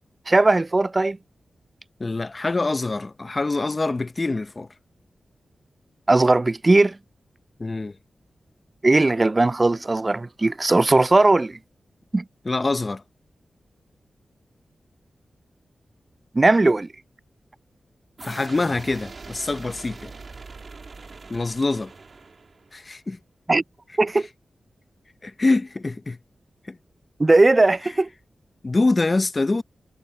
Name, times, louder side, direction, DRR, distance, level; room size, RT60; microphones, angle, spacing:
voice 1, 0.3-1.2 6.1-7.0 8.8-11.6 12.1-12.2 16.3-16.9 23.5-23.6 24.0-24.3 27.2-28.1, right 2 dB, 30° right, 0.3 m, -18 dB
voice 2, 2.0-4.7 7.6-8.0 12.4-13.0 18.2-20.1 21.3-21.9 22.7-23.2 25.2-26.2 26.7-26.8 28.6-29.6, left 3 dB, 35° left, 0.7 m, -24 dB
sound 1, 18.2-22.8, right 4 dB, 55° right, 2.3 m, -42 dB
cardioid pair, 70°, 0 cm